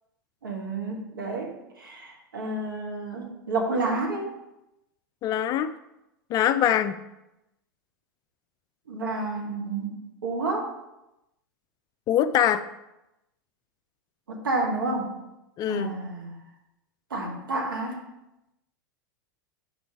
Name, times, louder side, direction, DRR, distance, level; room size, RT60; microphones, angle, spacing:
voice 1, 0.4-1.5 1.8-4.3 8.9-10.7 14.3-15.1 15.7-16.4 17.1-18.0, right 3 dB, 80° right, 1 dB, 1.3 m, -30 dB
voice 2, 5.2-5.7 6.3-6.9 12.1-12.6 15.6-15.9, left 10 dB, 35° left, 12 dB, 0.3 m, -23 dB
5.0 x 4.6 x 4.7 m, 0.92 s
figure-of-eight pair, 90°, 11 cm